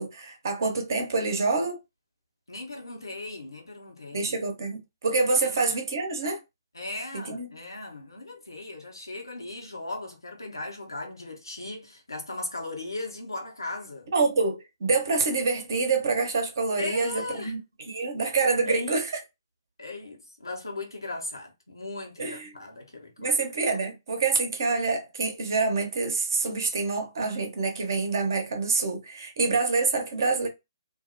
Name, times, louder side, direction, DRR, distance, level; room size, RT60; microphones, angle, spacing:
voice 1, 0.0-1.8 4.1-6.4 7.2-7.5 14.1-17.6 17.9-19.1 22.2-22.5 23.2-30.5, right 4 dB, 55° right, 0.8 m, -26 dB
voice 2, 2.5-4.4 5.3-5.7 6.7-14.1 16.8-17.6 18.7-19.1 19.8-23.4, left 2 dB, 80° left, 0.9 m, -37 dB
2.5 x 2.0 x 2.6 m
figure-of-eight pair, 130°, 2 cm